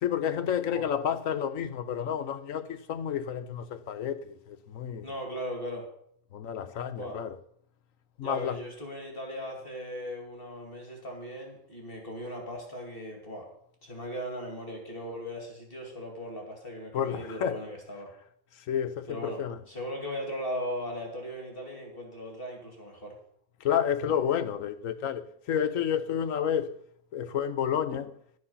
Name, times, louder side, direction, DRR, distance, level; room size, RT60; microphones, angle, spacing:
voice 1, 0.0-5.1 6.3-7.4 8.2-8.6 16.9-17.6 18.7-19.6 23.6-26.8 27.1-28.2, left 9 dB, 70° left, 1.1 m, -30 dB
voice 2, 5.0-5.9 7.0-7.2 8.2-13.5 13.8-18.1 19.1-23.2, equal, 40° left, 2.8 m, -38 dB
11.5 x 9.4 x 5.6 m
omnidirectional pair, 1.5 m